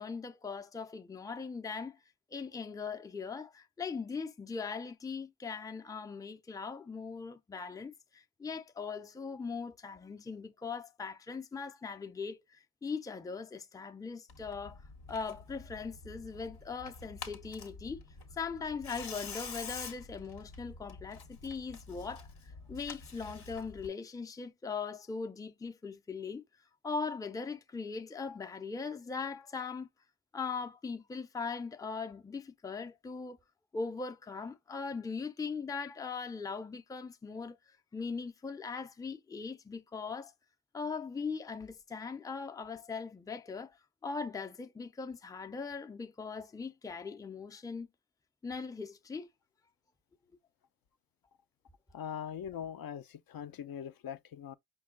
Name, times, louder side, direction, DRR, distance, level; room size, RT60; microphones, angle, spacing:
voice 1, 0.0-2.0 2.3-14.8 15.1-18.0 18.3-26.4 26.8-29.9 30.3-33.4 33.7-37.6 37.9-40.3 40.7-43.8 44.0-47.9 48.4-49.3, left 5 dB, 10° left, 0.4 m, -40 dB
Tearing, 14.3-23.9, left 4 dB, 90° left, 1.1 m, -47 dB
voice 2, 51.9-54.5, left 8 dB, 65° left, 0.5 m, -41 dB
5.3 x 2.2 x 3.6 m
cardioid pair, 85°, 38 cm